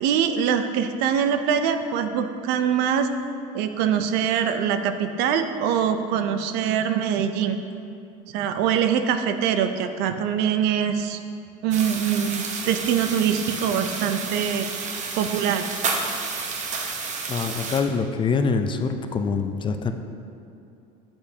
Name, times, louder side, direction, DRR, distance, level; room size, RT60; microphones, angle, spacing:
voice 1, 0.0-3.1 3.5-7.6 8.3-11.2 11.6-14.7 15.2-15.7, right 8 dB, 65° right, 9 dB, 0.5 m, -23 dB
sound 1, 11.7-17.8, right 4 dB, 40° right, 0.9 m, -30 dB
voice 2, 17.3-19.9, left 5 dB, 25° left, 7 dB, 0.4 m, -25 dB
8.8 x 7.0 x 2.8 m, 2.6 s
supercardioid pair, 105°, 18 cm